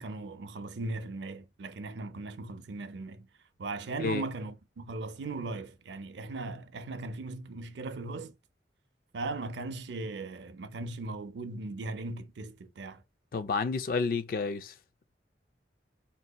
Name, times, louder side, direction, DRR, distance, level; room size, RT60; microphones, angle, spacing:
voice 1, 0.0-3.3 3.6-8.3 9.1-13.0, right 3 dB, 85° right, 0.5 m, -38 dB
voice 2, 13.3-14.7, left 4 dB, 50° left, 0.3 m, -30 dB
3.9 x 2.7 x 2.2 m
head